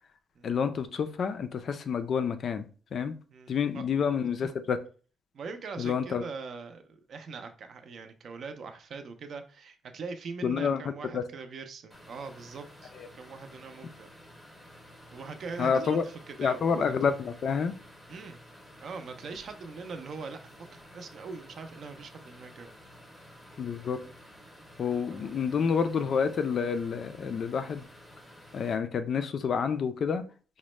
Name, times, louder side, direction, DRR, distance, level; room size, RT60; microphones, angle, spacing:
voice 1, 0.4-2.7 2.9-3.2 3.5-4.8 5.8-6.2 10.4-10.8 11.1-11.2 12.9-13.1 15.6-16.0 16.4-17.7 23.6-24.0 24.8-27.9 28.5-30.3, left 6 dB, 45° left, 10 dB, 0.3 m, -28 dB
voice 2, 3.3-3.8 5.3-12.9 13.2-14.1 15.1-16.9 18.1-18.4 18.8-22.7 25.1-25.4, right 4 dB, 45° right, 8 dB, 0.4 m, -42 dB
sound 1, 11.9-28.8, equal, 5° left, 0.6 m, -52 dB
5.0 x 2.1 x 3.1 m, 0.38 s
cardioid pair, 170°, 0 cm